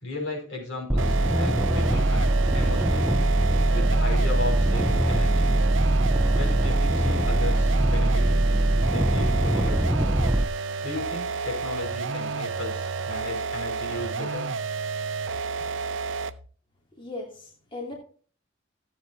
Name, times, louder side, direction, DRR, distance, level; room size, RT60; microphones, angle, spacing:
voice 1, 0.0-3.3 3.7-5.4 6.3-8.5 8.9-9.9 10.8-14.5, left 2 dB, 75° left, -1 dB, 5.1 m, -35 dB
sound 1, 0.9-10.4, right 1 dB, 10° right, 0.5 m, -22 dB
sound 2, 1.0-16.5, right 4 dB, 75° right, 0.6 m, -31 dB
voice 2, 17.0-17.9, left 2 dB, 25° left, -1 dB, 2.6 m, -37 dB
14.5 x 8.2 x 2.7 m, 0.42 s
head